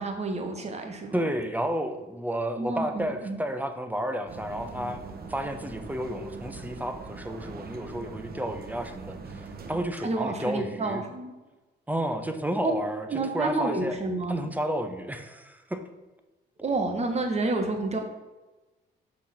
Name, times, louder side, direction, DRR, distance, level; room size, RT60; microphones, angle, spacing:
voice 1, 0.0-1.2 2.6-3.4 10.0-11.3 12.6-12.7 13.1-14.5 16.6-18.0, right 3 dB, 35° right, 4 dB, 1.4 m, -29 dB
voice 2, 1.1-11.0 11.9-13.1 13.3-14.0 14.3-15.8, equal, 10° right, 6 dB, 0.8 m, -31 dB
sound 1, 4.3-9.8, right 4 dB, 50° right, 0.9 m, -42 dB
6.2 x 4.1 x 5.9 m, 1.1 s
cardioid pair, 90°, 20 cm